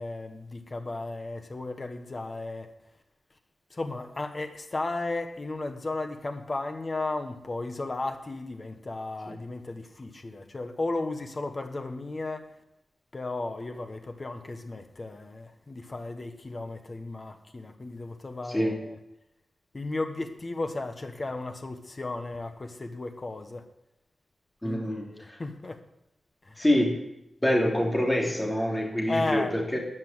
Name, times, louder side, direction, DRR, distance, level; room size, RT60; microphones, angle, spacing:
voice 1, 0.0-2.7 3.7-12.5 13.1-19.0 19.7-23.6 24.6-25.8 26.4-26.6 29.1-29.6, left 2 dB, 30° left, 1.4 m, -34 dB
voice 2, 18.5-18.8 24.6-25.1 26.6-27.0 27.4-29.8, left 1 dB, 10° left, 2.9 m, -25 dB
13.5 x 7.4 x 9.6 m
wide cardioid pair, 140°, 0 cm